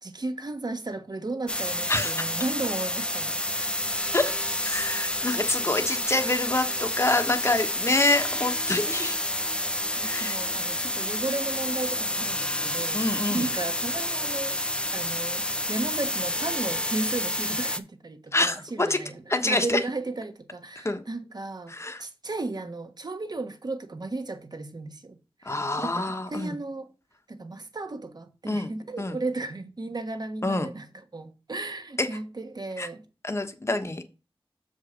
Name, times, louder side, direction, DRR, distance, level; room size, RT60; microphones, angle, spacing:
voice 1, 0.0-3.7 10.0-13.0 13.3-25.2 25.4-26.0 26.3-26.9 27.3-30.9 31.1-33.0, right 2 dB, 45° right, 1.2 m, -34 dB
sound 1, 1.5-17.8, left 1 dB, 10° left, 0.7 m, -29 dB
voice 2, 1.9-2.3 4.1-4.2 4.6-9.2 10.0-10.4 12.9-13.5 18.3-19.0 19.3-19.8 20.8-21.0 21.7-22.0 25.4-26.6 28.4-29.2 30.4-30.7 32.0-32.2 32.8-32.9 33.2-34.0, left 2 dB, 25° left, 1.1 m, -26 dB
7.2 x 5.0 x 5.0 m
wide cardioid pair, 90°, 10 cm